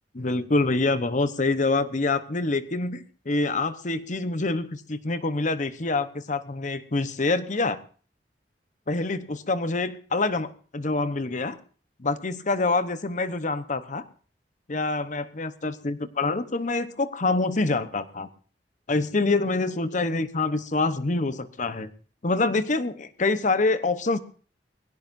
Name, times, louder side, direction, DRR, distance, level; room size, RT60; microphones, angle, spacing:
voice 1, 0.1-7.8 8.9-11.6 12.0-14.0 14.7-18.3 18.9-21.9 22.2-24.2, left 3 dB, 45° left, 12 dB, 1.0 m, -26 dB
21.0 x 16.5 x 2.7 m, 0.41 s
head